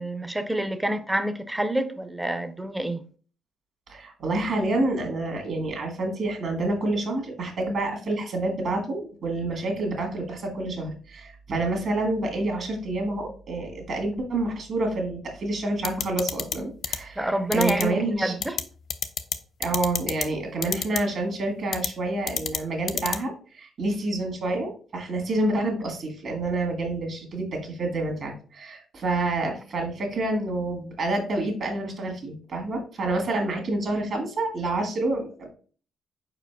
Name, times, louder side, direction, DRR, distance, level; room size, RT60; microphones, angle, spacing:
voice 1, 0.0-3.0 17.2-18.6, right 1 dB, 10° right, 0.5 m, -27 dB
voice 2, 3.9-18.3 19.6-35.5, right 2 dB, 60° right, 1.6 m, -28 dB
sound 1, 15.8-16.6 16.8-17.0 17.5-17.8 18.4-18.6 18.9-19.4 19.6-20.3 20.6-21.0 21.7-21.9 22.3-22.6 22.9-23.2, left 7 dB, 60° left, 0.4 m, -27 dB
4.9 x 4.4 x 2.2 m
cardioid pair, 90°, 0 cm